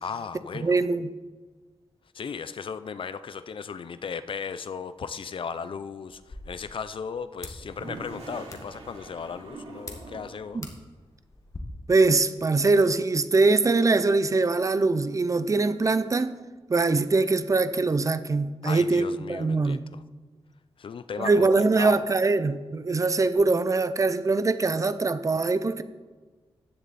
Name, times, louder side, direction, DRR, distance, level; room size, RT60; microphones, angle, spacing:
voice 1, 0.0-0.8 2.1-10.6 18.6-20.0 20.8-22.0, left 6 dB, 55° left, 0.5 m, -36 dB
voice 2, 0.6-1.1 10.5-10.7 11.9-16.3 16.7-19.8 21.2-25.8, right 3 dB, 30° right, 0.5 m, -23 dB
sound 1, 6.1-11.6, left 2 dB, 30° left, 1.5 m, -46 dB
Toilet flush, 7.5-10.5, right 2 dB, 80° right, 4.0 m, -43 dB
15.0 x 10.0 x 4.2 m
wide cardioid pair, 150°, 10 cm